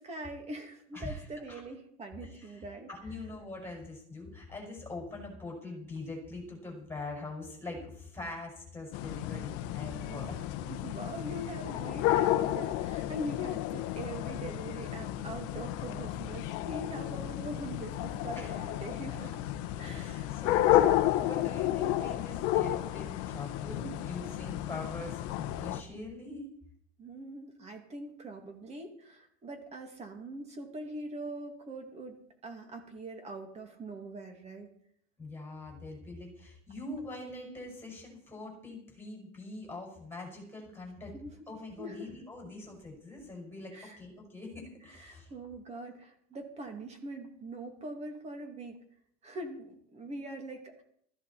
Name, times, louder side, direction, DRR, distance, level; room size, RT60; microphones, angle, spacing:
voice 1, 0.0-2.9 10.0-10.3 10.7-19.3 19.8-20.4 27.0-32.2 32.4-34.7 41.1-41.3 41.8-42.1 43.7-44.0 44.9-48.8 49.2-50.8, right 2 dB, 20° right, 4 dB, 2.4 m, -43 dB
voice 2, 2.2-2.6 2.9-10.5 18.3-18.5 19.8-26.5 35.2-41.1 41.5-45.3, left 2 dB, 5° left, -1 dB, 5.6 m, -43 dB
sound 1, 8.9-25.8, left 13 dB, 45° left, 1.1 m, -32 dB
15.5 x 14.5 x 4.3 m, 0.66 s
supercardioid pair, 155°, 33 cm